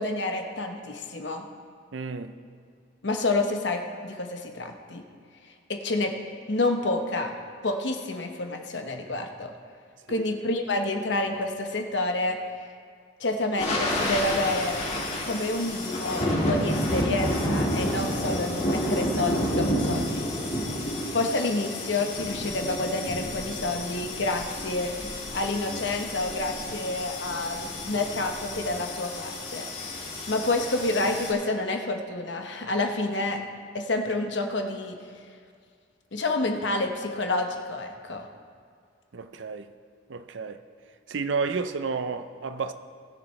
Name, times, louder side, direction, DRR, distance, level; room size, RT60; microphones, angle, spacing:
voice 1, 0.0-1.5 3.0-5.0 5.7-6.1 6.5-7.3 7.6-9.5 10.1-12.4 13.2-14.8 15.2-20.3 21.1-24.9 25.3-29.9 30.3-33.4 33.7-35.0 36.1-38.3, left 2 dB, 65° left, 1.0 m, -28 dB
voice 2, 1.9-2.3 10.1-10.2 39.1-39.7 40.1-40.6 41.1-42.7, right 4 dB, 75° right, 0.6 m, -31 dB
sound 1, 13.6-31.3, left 1 dB, 35° left, 1.8 m, -30 dB
20.0 x 7.3 x 3.2 m
head